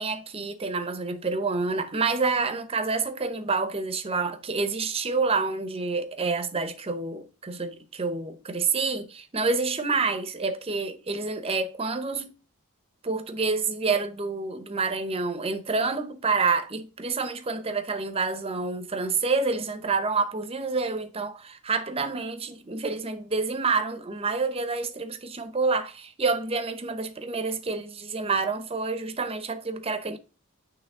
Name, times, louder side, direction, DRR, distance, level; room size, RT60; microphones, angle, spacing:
voice 1, 0.0-12.3 13.0-30.2, right 4 dB, 25° right, 0.7 m, -28 dB
8.9 x 3.2 x 3.6 m
head